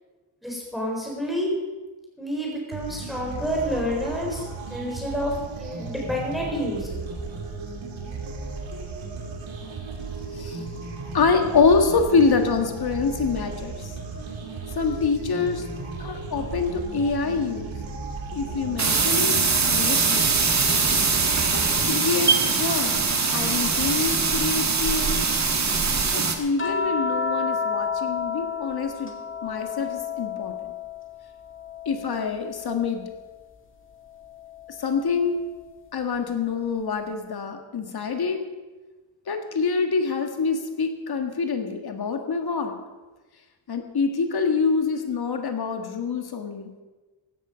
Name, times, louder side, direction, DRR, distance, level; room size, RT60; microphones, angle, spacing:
voice 1, 0.4-1.6 2.2-4.4 4.7-7.1, equal, ahead, -3 dB, 4.3 m, -29 dB
sound 1, 2.7-21.9, right 4 dB, 90° right, 2.6 m, -35 dB
voice 2, 10.0-10.8 11.1-13.9 14.7-15.6 16.0-17.7 18.3-19.4 19.7-20.3 21.5-25.2 26.1-29.1 29.4-30.7 31.9-33.0 34.8-35.4 35.9-38.4 39.3-42.8 43.7-46.8, left 5 dB, 55° left, 5 dB, 1.9 m, -26 dB
sound 2, 18.8-26.4, right 4 dB, 35° right, 1.7 m, -22 dB
sound 3, 26.6-31.1 31.4-33.1 34.6-34.8, left 5 dB, 25° left, 2.1 m, -30 dB
15.5 x 13.0 x 5.2 m, 1.2 s
wide cardioid pair, 145°, 45 cm